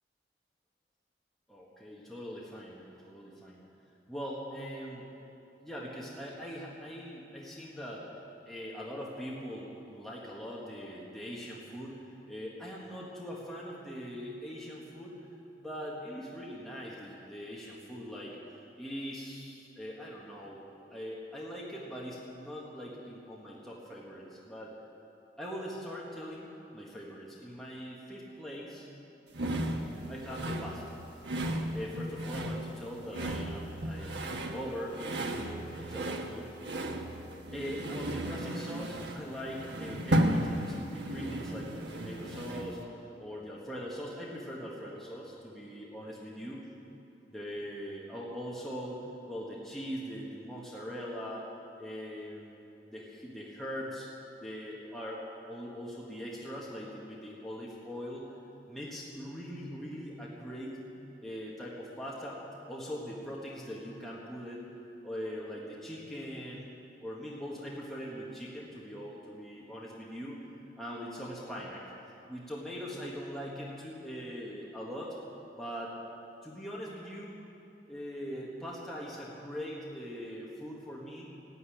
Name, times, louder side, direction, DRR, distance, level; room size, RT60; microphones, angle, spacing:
voice 1, 1.5-3.6 4.1-5.1 5.6-8.1 8.5-15.2 15.6-24.7 25.4-28.9 30.1-30.9 31.7-35.4 35.8-36.5 37.5-42.8 43.2-46.7 47.3-51.5 51.8-52.6 52.9-54.1 54.4-58.3 58.7-60.8 61.2-64.6 65.0-66.7 67.0-70.4 70.8-71.8 72.3-75.2 75.6-75.9 76.4-77.4 77.9-81.3, equal, ahead, -5 dB, 1.6 m, -41 dB
sound 1, 29.3-42.8, right 1 dB, 85° right, 1.3 m, -34 dB
15.0 x 9.6 x 10.0 m, 2.9 s
head